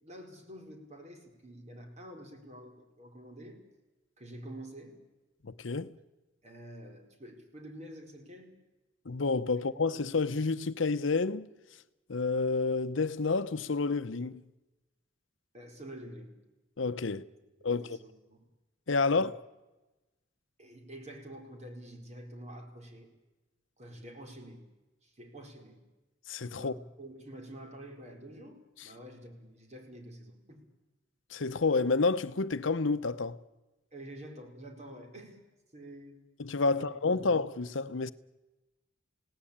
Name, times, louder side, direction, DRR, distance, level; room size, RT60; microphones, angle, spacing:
voice 1, 0.0-3.6 4.2-5.0 6.4-8.5 15.5-16.4 17.1-17.2 17.6-18.4 19.1-19.3 20.6-23.1 23.8-24.7 25.0-25.8 26.6-30.6 33.9-35.4 35.7-36.2 36.7-36.9 37.1-37.3, right 1 dB, 35° right, 4.6 m, -48 dB
voice 2, 5.4-5.9 9.1-11.5 12.1-14.4 16.8-17.2 17.6-18.0 18.9-19.4 26.3-26.7 31.3-33.4 36.4-38.1, left 4 dB, 75° left, 0.8 m, -29 dB
29.0 x 17.5 x 8.8 m
head